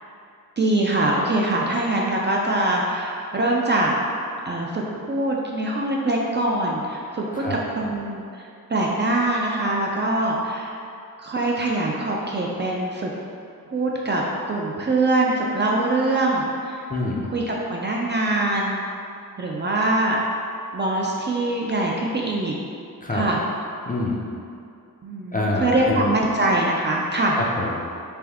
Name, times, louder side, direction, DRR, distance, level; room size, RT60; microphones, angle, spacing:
voice 1, 0.6-3.9 4.5-10.7 11.2-13.1 13.7-16.9 17.2-18.8 19.4-20.2 20.7-22.5 23.1-23.4 25.0-27.4, right 2 dB, 35° right, -3 dB, 0.4 m, -23 dB
voice 2, 16.9-17.3 23.0-23.2 23.9-24.2 25.3-26.1 27.4-27.8, left 2 dB, 25° left, -3 dB, 0.5 m, -26 dB
3.4 x 2.5 x 3.5 m, 2.5 s
wide cardioid pair, 75°, 34 cm